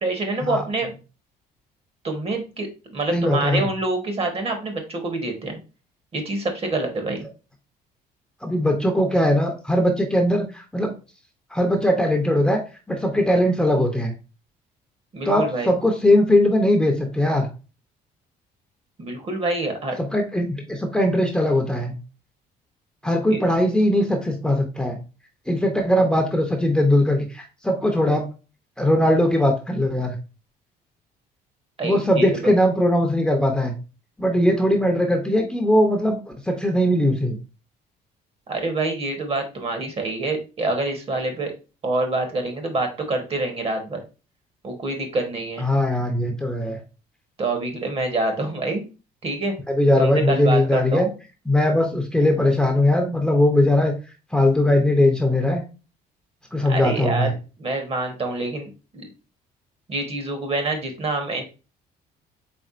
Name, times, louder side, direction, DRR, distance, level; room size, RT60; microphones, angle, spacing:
voice 1, 0.0-0.9 2.0-5.6 6.1-7.3 15.1-15.7 19.0-20.0 23.3-23.4 31.8-32.5 38.5-41.5 41.8-44.0 44.6-45.7 47.4-48.8 49.2-49.6 50.0-51.1 56.7-57.3 57.6-59.1 59.9-61.4, right 2 dB, 35° right, 5 dB, 1.1 m, -26 dB
voice 2, 3.1-3.6 8.4-10.9 11.5-12.6 12.9-14.1 15.3-17.5 20.0-21.9 23.0-25.0 25.5-28.2 28.8-30.2 31.8-33.7 34.2-37.4 45.6-46.8 49.7-51.1 51.5-53.9 54.3-55.6 56.5-57.3, left 1 dB, 5° left, 2 dB, 0.7 m, -20 dB
4.3 x 3.5 x 2.5 m, 0.32 s
cardioid pair, 110°, 17 cm